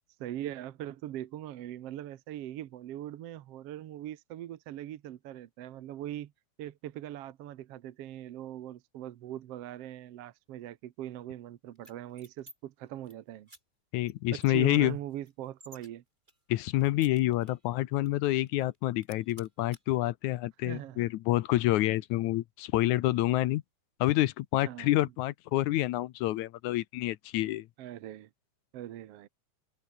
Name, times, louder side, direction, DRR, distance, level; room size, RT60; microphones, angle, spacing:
voice 1, 0.2-6.3 6.6-13.5 14.3-16.0 20.7-21.0 24.6-25.0 27.8-28.3 28.7-29.3, right 12 dB, 65° right, 1.8 m, -41 dB
sound 1, 11.8-12.6 12.9-13.1 13.5-13.6 14.0-14.1 14.4-15.9 16.3-17.7 18.1-18.2 18.5-18.8 19.0-19.8, right 1 dB, 15° right, 5.8 m, -55 dB
voice 2, 13.9-15.0 16.5-23.6 24.0-27.7, left 16 dB, 85° left, 2.2 m, -28 dB
omnidirectional pair, 3.4 m